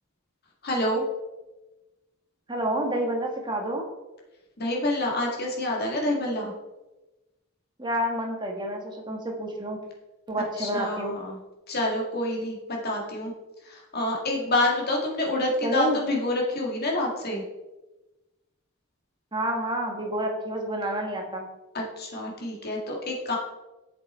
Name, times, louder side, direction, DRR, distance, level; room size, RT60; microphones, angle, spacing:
voice 1, 0.6-1.0 4.6-6.5 10.6-11.4 11.7-13.3 13.6-17.4 21.7-23.4, left 1 dB, 45° left, -1 dB, 2.0 m, -27 dB
voice 2, 2.5-3.9 7.8-9.8 10.3-11.1 15.6-16.0 19.3-21.5, right 1 dB, 20° right, 1 dB, 1.4 m, -29 dB
7.6 x 7.4 x 4.4 m, 1.1 s
head